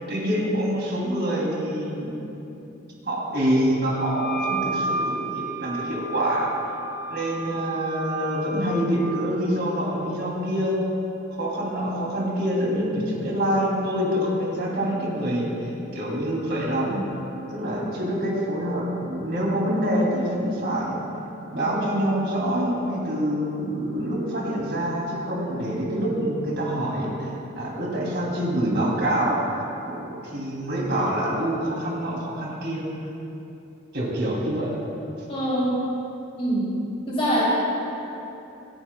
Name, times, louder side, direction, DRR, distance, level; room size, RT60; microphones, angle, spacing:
voice 1, 0.0-2.2 3.1-6.5 7.1-10.8 11.4-17.0 17.5-21.0 21.5-32.8 33.9-34.7, equal, 55° right, -4 dB, 2.8 m, -26 dB
Wind instrument woodwind instrument, 4.0-8.9, right 2 dB, 20° right, 1.3 m, -32 dB
voice 2, 35.3-35.8 36.4-36.7 37.1-37.5, equal, 30° left, -6 dB, 2.9 m, -24 dB
25.5 x 9.8 x 2.2 m, 2.9 s
head